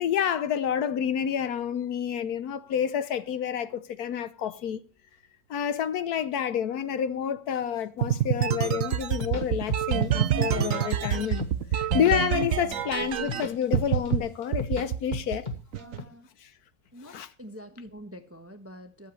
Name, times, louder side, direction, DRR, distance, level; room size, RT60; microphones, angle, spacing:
voice 1, 0.0-4.8 5.5-11.5 11.7-15.5 16.4-16.5 17.0-17.3, left 9 dB, 65° left, 1.2 m, -29 dB
sound 1, 8.0-13.4 13.7-14.2 14.5-16.0, right 10 dB, 60° right, 1.0 m, -26 dB
sound 2, 9.0-10.0 10.4-11.5 11.8-12.7 13.1-14.9 15.1-16.0, left 5 dB, 25° left, 1.6 m, -35 dB
voice 2, 12.6-13.1 15.8-16.3 16.9-19.1, equal, 10° right, 0.9 m, -46 dB
23.0 x 7.8 x 3.2 m
omnidirectional pair, 1.9 m